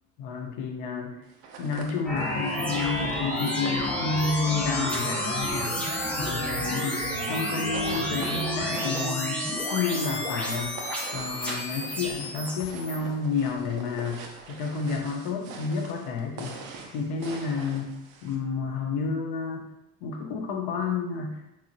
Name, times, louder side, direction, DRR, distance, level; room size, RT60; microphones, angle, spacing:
voice 1, 0.2-1.2 1.6-5.8 6.2-9.4 9.7-16.6 16.9-19.7 20.0-21.4, left 4 dB, 65° left, 2 dB, 0.7 m, -30 dB
sound 1, 1.3-18.4, right 4 dB, 85° right, 0.6 m, -43 dB
sound 2, 2.1-13.0, equal, 5° left, 0.6 m, -30 dB
3.0 x 2.4 x 2.5 m, 0.88 s
hypercardioid pair, 80°, 40 cm